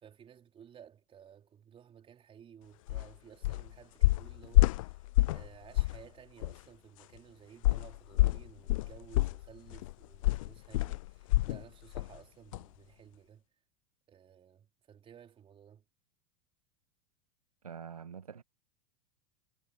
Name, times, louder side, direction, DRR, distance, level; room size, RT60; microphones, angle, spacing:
voice 1, 0.0-13.4 14.1-15.8, right 8 dB, 30° right, 3.8 m, -56 dB
sound 1, 2.9-3.1 3.4-3.7 4.0-5.5 5.7-6.0 6.4-6.5 7.6-11.6 11.9-12.2 12.5-12.6, left 18 dB, 65° left, 0.5 m, -27 dB
voice 2, 17.6-18.4, right 7 dB, 90° right, 1.5 m, -45 dB
hypercardioid pair, 90°, 18 cm